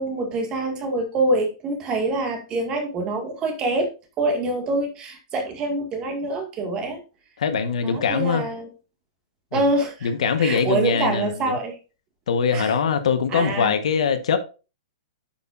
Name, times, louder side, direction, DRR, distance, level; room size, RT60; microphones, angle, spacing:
voice 1, 0.0-3.9 4.2-7.0 7.8-8.7 9.5-10.1 10.4-11.7 12.5-12.7 13.3-13.7, right 2 dB, 25° right, 1.9 m, -25 dB
voice 2, 7.4-8.5 9.5-9.6 10.0-11.6 12.3-14.4, left 6 dB, 75° left, 1.2 m, -22 dB
10.5 x 5.7 x 2.6 m
hypercardioid pair, 150°, 3 cm